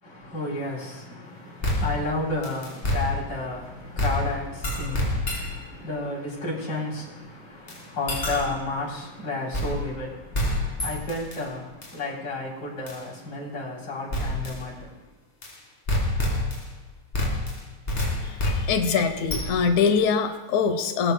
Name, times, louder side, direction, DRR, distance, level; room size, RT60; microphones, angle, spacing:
voice 1, 0.0-15.1, left 2 dB, 45° left, -4 dB, 4.1 m, -32 dB
sound 1, 1.6-3.6 4.0-5.7 7.7-7.8 8.1-8.7 9.5-10.1 10.3-11.4 11.8-11.9 12.9-13.0 14.1-14.6 15.4-15.5 15.9-16.8 17.1-19.8, left 1 dB, 25° left, 1.6 m, -28 dB
voice 2, 18.2-21.1, left 6 dB, 75° left, 7 dB, 2.2 m, -23 dB
21.5 x 9.2 x 2.2 m, 1.1 s
omnidirectional pair, 3.4 m